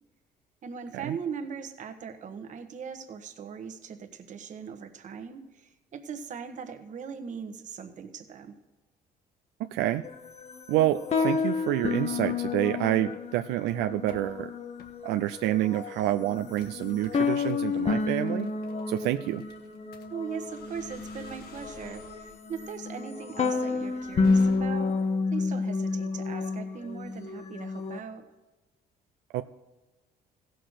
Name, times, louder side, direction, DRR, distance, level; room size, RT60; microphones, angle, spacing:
voice 1, 0.6-8.5 20.1-25.0 25.3-28.2, right 6 dB, 45° right, 6 dB, 1.2 m, -40 dB
voice 2, 9.6-10.1 10.7-14.5 15.0-18.5 18.9-19.4 29.3-29.4, right 14 dB, 90° right, 8 dB, 0.4 m, -28 dB
sound 1, 10.0-28.0, left 4 dB, 40° left, 1.0 m, -30 dB
sound 2, 11.4-13.2 13.6-14.3 14.8-15.0 15.4-15.6 16.0-25.0, left 5 dB, 70° left, 1.5 m, -52 dB
16.0 x 6.0 x 6.4 m, 1.1 s
cardioid pair, 110°, 17 cm